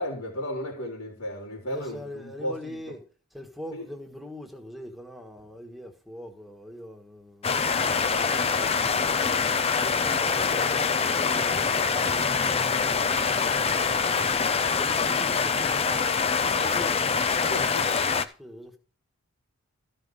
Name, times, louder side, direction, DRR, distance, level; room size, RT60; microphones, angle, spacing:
voice 1, 0.0-2.9 3.7-3.8 10.5-10.7 17.5-17.9, left 1 dB, 85° left, 3.8 m, -34 dB
voice 2, 1.7-3.0 3.3-17.6 18.1-18.8, left 1 dB, ahead, 1.6 m, -42 dB
sound 1, 7.4-18.3, left 5 dB, 25° left, 0.6 m, -25 dB
14.5 x 5.5 x 4.9 m
head